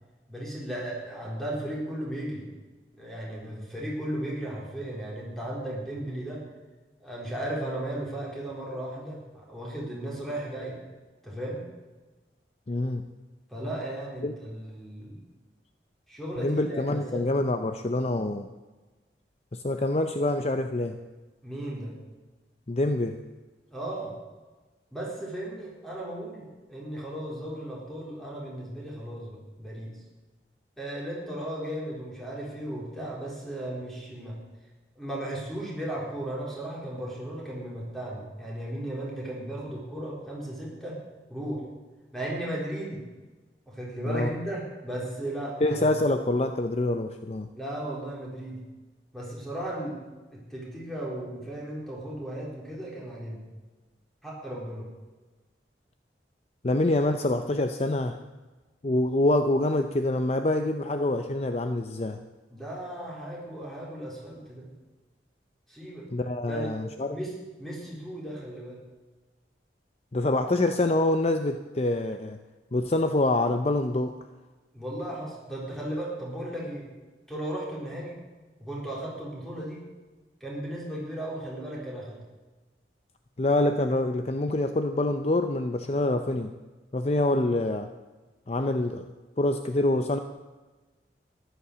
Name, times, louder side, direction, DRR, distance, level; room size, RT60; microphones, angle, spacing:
voice 1, 0.3-2.5 3.0-6.4 7.0-10.8 11.2-11.6 13.5-15.2 16.1-17.2 21.4-22.0 23.7-24.1 24.9-29.9 30.8-34.4 35.0-41.0 41.3-41.6 42.1-43.0 43.7-46.0 47.5-48.6 49.1-50.0 50.3-53.5 54.2-54.9 62.5-64.7 65.7-66.1 66.4-66.7 67.1-68.8 74.7-76.9 77.3-78.2 78.6-79.8 80.4-82.2, right 1 dB, ahead, -4 dB, 4.1 m, -35 dB
voice 2, 12.7-13.0 14.2-14.3 16.4-18.5 19.5-21.0 22.7-23.2 44.1-44.3 45.6-47.5 56.6-58.2 58.8-62.2 66.1-67.2 70.1-72.4 72.7-74.1 83.4-86.5 86.9-87.9 88.5-89.1 89.4-90.2, left 2 dB, 35° left, 7 dB, 0.6 m, -26 dB
13.5 x 11.5 x 6.9 m, 1.2 s
head